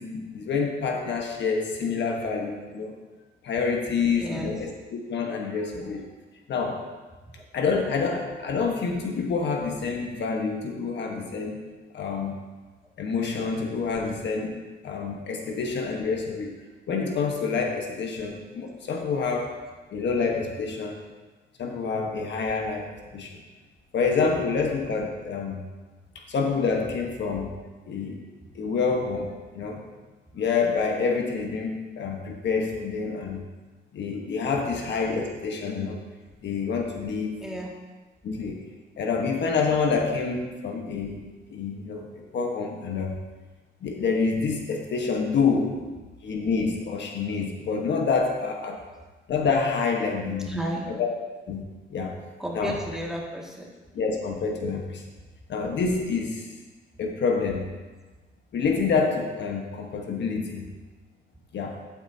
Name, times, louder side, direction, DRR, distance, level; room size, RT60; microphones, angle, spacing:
voice 1, 0.0-2.9 3.4-6.0 6.5-6.8 7.5-11.6 11.9-12.3 13.0-14.5 14.8-16.5 16.9-19.5 19.9-21.0 21.6-22.9 23.1-23.4 23.9-25.6 26.1-27.5 27.9-28.2 28.5-29.8 30.3-33.4 33.9-36.0 36.4-37.4 38.2-38.6 39.0-43.2 43.8-45.7 46.2-48.8 49.3-50.5 50.9-51.1 51.5-51.6 51.9-52.1 52.5-52.8 53.9-55.0 55.5-56.5 57.0-57.6 58.5-60.6 61.5-61.8, left 5 dB, 60° left, 1 dB, 1.3 m, -27 dB
voice 2, 4.2-4.5 8.4-8.5 12.8-12.9 37.4-37.7 50.5-50.9 52.4-53.7, right 1 dB, 5° right, -3 dB, 2.1 m, -33 dB
11.5 x 8.6 x 2.8 m, 1.3 s
cardioid pair, 90°, 20 cm